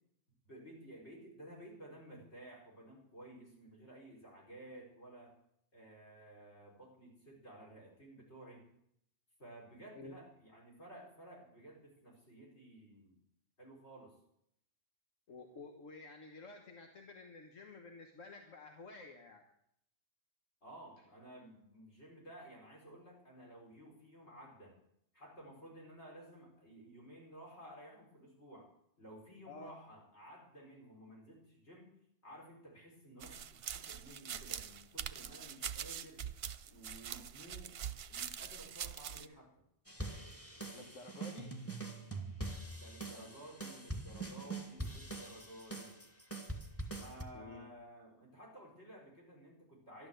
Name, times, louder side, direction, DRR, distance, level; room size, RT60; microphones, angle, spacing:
voice 1, 0.4-5.3 5.7-8.7 9.4-13.2 13.6-14.2 20.6-24.8 25.1-28.7 29.0-31.9 32.2-36.3 36.7-37.8 38.1-39.5 42.7-45.9 46.9-50.1, right 1 dB, 60° left, -1 dB, 5.0 m, -54 dB
voice 2, 15.3-19.4 29.5-29.7 40.7-41.6 47.3-47.7, left 3 dB, 90° left, 3 dB, 1.7 m, -51 dB
sound 1, 33.2-39.3, right 8 dB, 60° right, 0.9 m, -43 dB
sound 2, 39.9-47.2, right 2 dB, 10° left, 1.7 m, -44 dB
12.0 x 12.0 x 7.9 m, 0.73 s
omnidirectional pair, 1.3 m